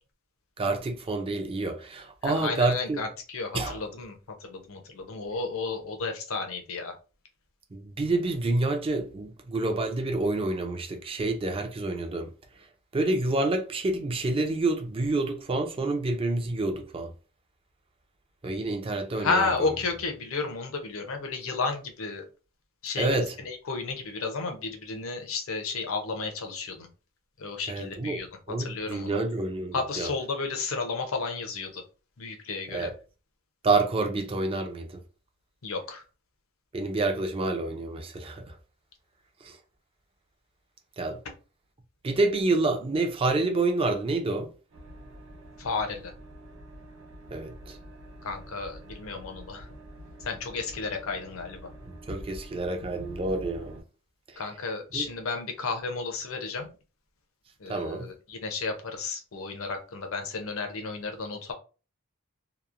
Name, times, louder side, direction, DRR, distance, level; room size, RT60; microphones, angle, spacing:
voice 1, 0.6-3.0 3.5-3.8 7.7-12.3 12.9-17.1 18.4-19.5 23.0-23.3 27.7-28.2 28.5-30.1 32.7-32.9 33.6-35.0 36.7-38.6 39.4-39.6 41.0-41.2 42.0-44.5 47.3-47.8 52.1-53.8 54.9-55.1 57.7-58.1, right 2 dB, 25° right, 0.4 m, -28 dB
voice 2, 2.2-6.9 19.2-22.3 22.8-23.2 23.4-26.9 27.4-28.3 28.6-29.2 29.7-31.8 32.2-32.9 35.6-36.0 45.6-46.1 48.2-49.7 50.2-51.7 54.4-56.7 57.6-61.5, left 4 dB, 70° left, 0.6 m, -32 dB
sound 1, 44.7-53.8, equal, 70° right, 0.7 m, -46 dB
2.9 x 2.0 x 2.4 m
head